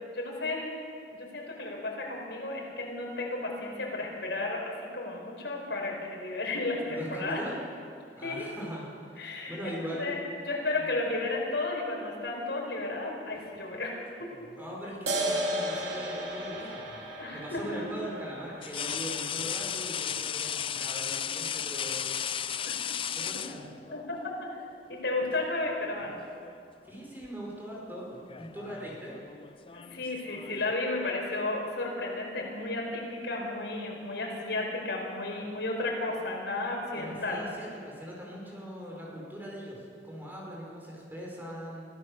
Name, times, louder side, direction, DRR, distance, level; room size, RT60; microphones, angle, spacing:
voice 1, 0.1-0.8 1.1-7.4 8.2-8.5 9.2-9.6 10.0-10.2 10.4-14.3 17.2-17.8 22.6-22.8 23.9-24.2 24.5-24.6 24.9-26.2 29.7-37.4, left 2 dB, 85° left, -1 dB, 5.1 m, -33 dB
voice 2, 6.9-7.5 8.2-10.2 14.6-17.0 17.3-22.1 23.1-23.7 26.8-28.1 28.4-29.2 36.9-41.9, equal, 10° right, -3 dB, 5.4 m, -41 dB
sound 1, 14.3-15.2 16.9-17.1 18.6-24.1 25.3-25.5 25.9-26.6 26.9-27.3 28.1-30.7, left 8 dB, 30° left, 0.5 m, -36 dB
sound 2, 15.1-22.0, right 1 dB, 80° right, 3.2 m, -36 dB
24.0 x 16.0 x 6.8 m, 2.3 s
head